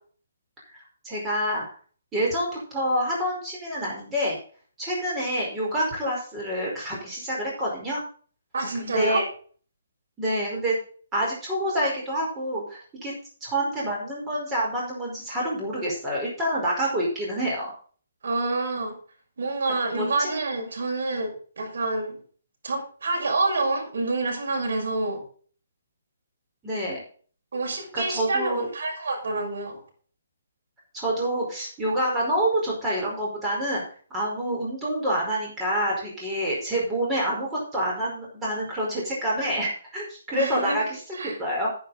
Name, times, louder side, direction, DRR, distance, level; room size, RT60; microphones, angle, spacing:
voice 1, 1.0-1.6 2.1-4.4 4.8-8.0 8.8-9.2 10.2-10.8 11.1-13.1 13.4-17.7 19.9-20.3 26.6-27.0 27.9-28.7 30.9-33.8 34.1-41.7, right 1 dB, 10° right, -4 dB, 4.9 m, -27 dB
voice 2, 8.5-9.2 18.2-19.0 19.4-22.2 22.6-25.2 27.5-29.8 40.3-40.8 41.2-41.4, right 2 dB, 70° right, 0 dB, 6.2 m, -27 dB
10.0 x 10.0 x 4.2 m, 0.43 s
hypercardioid pair, 165°, 0 cm